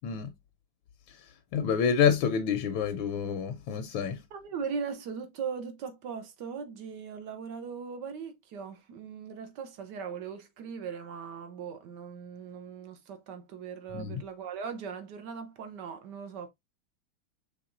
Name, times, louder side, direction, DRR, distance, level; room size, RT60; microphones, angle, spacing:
voice 1, 0.0-0.3 1.5-4.2 13.9-14.2, left 7 dB, 80° left, 1.3 m, -27 dB
voice 2, 4.3-16.5, right 6 dB, 65° right, 1.3 m, -39 dB
5.8 x 3.4 x 2.5 m
omnidirectional pair, 2.2 m